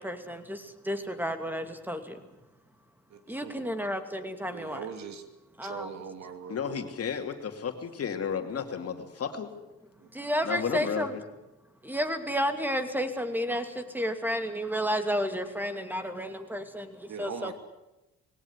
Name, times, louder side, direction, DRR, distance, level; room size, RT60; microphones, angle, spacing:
voice 1, 0.0-2.2 3.3-4.9 5.6-5.9 10.1-11.1 11.8-17.5, equal, 5° right, 8 dB, 2.6 m, -31 dB
voice 2, 3.1-3.7 4.5-5.2 5.6-6.8 10.0-10.1 17.1-17.5, right 7 dB, 65° right, 9 dB, 2.6 m, -41 dB
voice 3, 6.5-9.5 10.4-11.2, left 7 dB, 50° left, 6 dB, 2.8 m, -33 dB
20.0 x 17.5 x 9.8 m, 0.98 s
cardioid pair, 90°, 30 cm